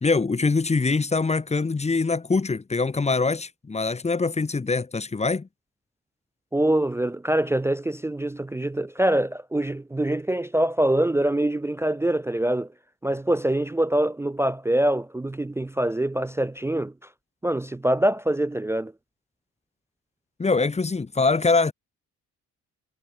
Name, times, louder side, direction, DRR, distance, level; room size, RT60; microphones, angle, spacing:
voice 1, 0.0-5.5 20.4-21.7, left 4 dB, 20° left, 1.2 m, -23 dB
voice 2, 6.5-12.7 13.0-16.9 17.4-18.9, right 1 dB, 10° right, 0.4 m, -24 dB
cardioid pair, 90°, 30 cm